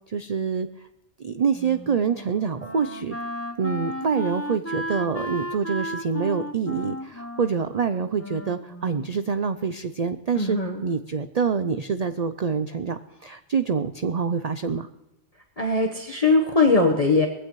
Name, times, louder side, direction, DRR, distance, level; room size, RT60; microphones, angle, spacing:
voice 1, 0.1-0.7 1.2-3.2 3.6-14.9, right 6 dB, 55° right, 10 dB, 0.4 m, -26 dB
Wind instrument woodwind instrument, 1.5-9.3, equal, 15° left, 0.7 m, -35 dB
voice 2, 10.4-10.8 15.6-17.3, left 3 dB, 30° left, 0 dB, 1.1 m, -20 dB
20.0 x 15.5 x 3.1 m, 0.97 s
omnidirectional pair, 1.3 m